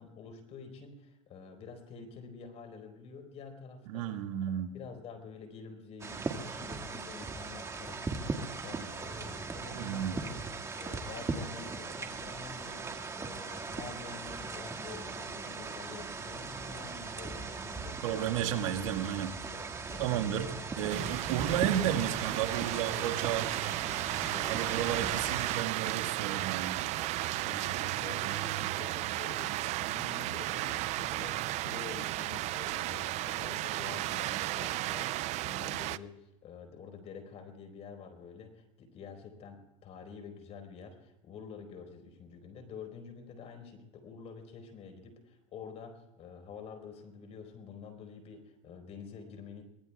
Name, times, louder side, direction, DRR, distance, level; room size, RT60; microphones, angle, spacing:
voice 1, 0.0-8.2 8.6-10.5 10.7-18.6 19.5-20.4 22.9-23.3 23.7-25.2 25.9-26.6 27.0-49.6, left 5 dB, 40° left, 6 dB, 4.3 m, -48 dB
voice 2, 3.9-4.7 9.7-10.2 18.0-19.3 20.0-20.5 20.8-23.4 24.4-26.8, right 10 dB, 80° right, 4 dB, 1.7 m, -32 dB
sound 1, 6.0-25.6, right 4 dB, 15° right, 1.7 m, -39 dB
sound 2, 20.9-36.0, right 17 dB, 40° right, 0.5 m, -34 dB
23.5 x 19.5 x 2.3 m, 0.92 s
supercardioid pair, 125°, 17 cm